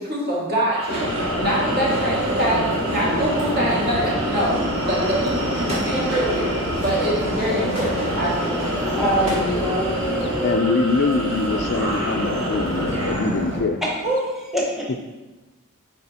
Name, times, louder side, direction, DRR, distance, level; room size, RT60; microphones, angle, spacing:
voice 1, 0.0-4.6 4.8-9.0 14.0-14.2, right 1 dB, 45° right, -6 dB, 2.1 m, -24 dB
sound 1, 0.7-13.1, right 1 dB, 85° right, 1.2 m, -34 dB
Subway metro underground, 0.9-13.6, equal, 65° right, 1.8 m, -26 dB
sound 2, 5.7-6.0 6.7-7.2 7.6-8.7 9.0-10.3, equal, 30° right, 1.7 m, -35 dB
voice 2, 9.0-10.3 13.8-14.0 14.5-15.0, equal, ahead, -4 dB, 1.1 m, -24 dB
voice 3, 10.4-13.8, left 3 dB, 50° left, 7 dB, 0.4 m, -23 dB
9.4 x 4.4 x 2.9 m, 1.1 s
head